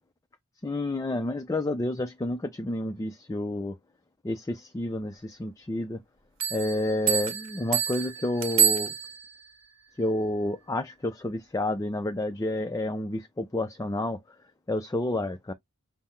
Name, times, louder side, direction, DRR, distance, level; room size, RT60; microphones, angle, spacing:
voice 1, 0.6-3.8 4.2-6.0 6.5-8.9 10.0-14.2 14.7-15.5, left 1 dB, 15° left, 0.4 m, -30 dB
sound 1, 6.4-9.4, right 9 dB, 60° right, 1.0 m, -27 dB
5.5 x 2.0 x 4.3 m
head